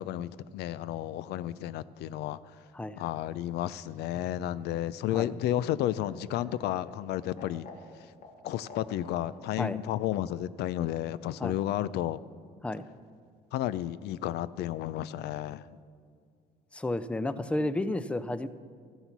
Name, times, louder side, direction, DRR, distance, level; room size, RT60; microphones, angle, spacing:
voice 1, 0.0-2.4 3.0-7.7 8.4-12.2 13.5-15.6 17.4-17.5, left 12 dB, 75° left, 17 dB, 0.4 m, -32 dB
Laughter, 3.8-9.4 10.7-11.3, left 3 dB, 55° left, 1.8 m, -50 dB
voice 2, 16.7-18.5, left 2 dB, 5° left, 13 dB, 0.4 m, -31 dB
13.5 x 8.0 x 5.9 m, 2.2 s
cardioid pair, 110°, 17 cm